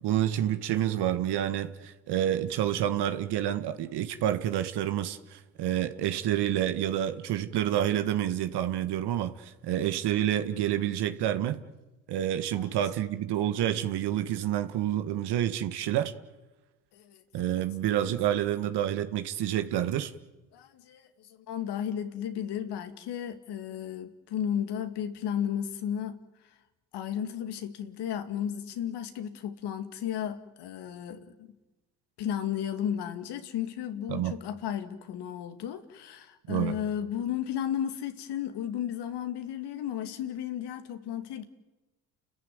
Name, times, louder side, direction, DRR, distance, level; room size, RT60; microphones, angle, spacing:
voice 1, 0.0-11.6 12.1-16.1 17.3-20.1 34.1-34.3 36.5-36.8, right 11 dB, 65° right, 10 dB, 1.6 m, -28 dB
voice 2, 16.9-17.4 20.5-26.2 26.9-31.5 32.2-41.4, left 9 dB, 65° left, 8 dB, 2.4 m, -34 dB
30.0 x 14.5 x 9.5 m, 1.1 s
supercardioid pair, 70°, 43 cm